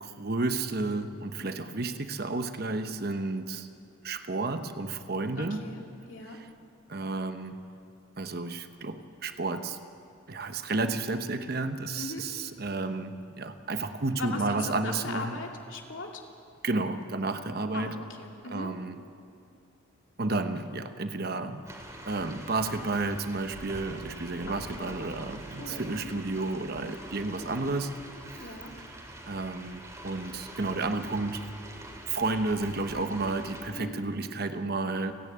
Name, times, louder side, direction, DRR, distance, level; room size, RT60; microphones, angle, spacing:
voice 1, 0.0-3.7 4.0-5.7 6.9-7.6 8.2-9.8 10.3-15.4 16.6-18.0 18.5-19.0 20.2-21.6 22.1-27.9 28.3-28.5 29.3-31.5 32.1-35.1, right 3 dB, 50° right, 9 dB, 1.0 m, -31 dB
voice 2, 5.4-5.8 6.1-6.4 12.0-12.2 14.2-16.2 17.7-18.7 24.5-24.9 25.6-26.1 28.4-28.7 33.7-34.0, left 2 dB, 80° left, 1 dB, 2.5 m, -39 dB
sound 1, 21.7-33.6, right 1 dB, 15° right, 2.5 m, -45 dB
30.0 x 10.5 x 8.7 m, 2.5 s
head